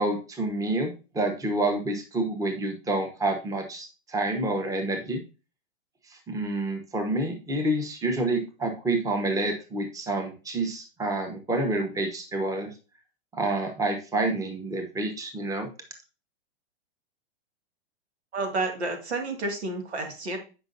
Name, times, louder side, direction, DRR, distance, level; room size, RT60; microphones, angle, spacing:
voice 1, 0.0-5.2 6.3-12.7 13.3-15.7, right 2 dB, 10° right, 4 dB, 1.0 m, -28 dB
voice 2, 18.3-20.4, right 2 dB, 85° right, 4 dB, 2.1 m, -30 dB
8.0 x 5.2 x 2.6 m, 0.32 s
hypercardioid pair, 125°, 32 cm